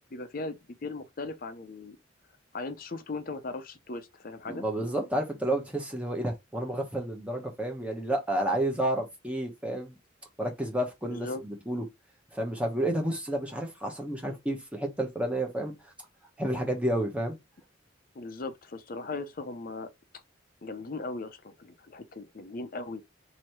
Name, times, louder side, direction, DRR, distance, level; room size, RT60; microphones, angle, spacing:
voice 1, 0.1-2.0 2.5-4.6 11.0-11.4 18.2-19.9 20.6-23.0, left 3 dB, 45° left, 0.5 m, -38 dB
voice 2, 4.5-9.9 10.4-11.8 12.3-15.7 16.4-17.4, right 1 dB, 5° right, 0.9 m, -30 dB
3.0 x 2.7 x 4.5 m
head